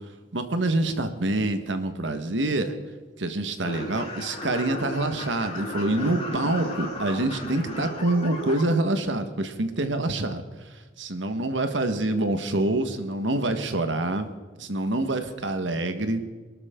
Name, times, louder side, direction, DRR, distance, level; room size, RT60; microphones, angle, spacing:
voice 1, 0.3-2.7 3.2-10.4 11.0-14.3 14.6-16.2, right 2 dB, 75° right, 8 dB, 1.6 m, -26 dB
sound 1, 3.6-8.6, left 1 dB, 30° left, 4.7 m, -35 dB
23.5 x 12.5 x 3.8 m, 1.4 s
head